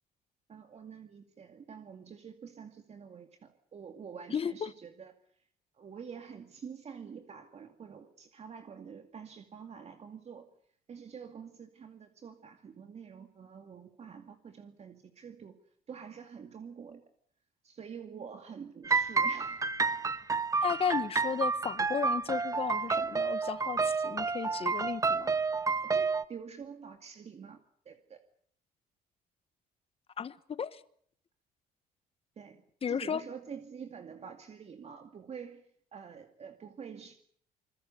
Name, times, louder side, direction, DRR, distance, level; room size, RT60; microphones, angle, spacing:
voice 1, 0.5-5.1 5.7-10.5 10.9-15.6 15.9-17.0 17.6-19.7 25.8-28.2 32.4-35.6 35.9-37.1, right 6 dB, 40° right, 2.3 m, -47 dB
voice 2, 4.3-4.7 20.6-25.3 30.2-30.8 32.8-33.2, left 7 dB, 35° left, 1.2 m, -34 dB
sound 1, 18.8-26.2, right 4 dB, 20° right, 1.0 m, -30 dB
27.0 x 21.5 x 6.9 m
cardioid pair, 110°, 17 cm